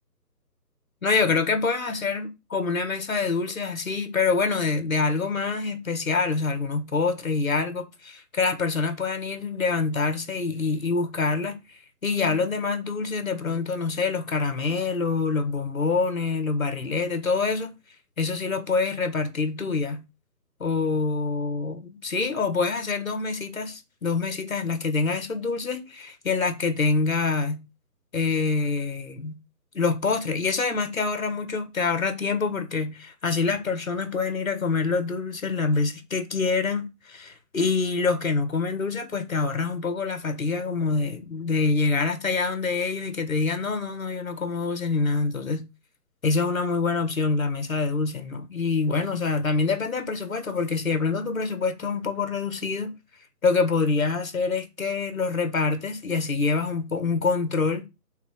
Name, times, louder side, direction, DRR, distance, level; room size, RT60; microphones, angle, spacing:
voice 1, 1.0-11.6 12.0-17.7 18.2-20.0 20.6-27.6 28.1-29.4 29.7-45.6 46.2-53.0 53.4-57.9, left 4 dB, 55° left, 1.5 m, -26 dB
5.8 x 3.9 x 6.1 m
hypercardioid pair, 180°, 49 cm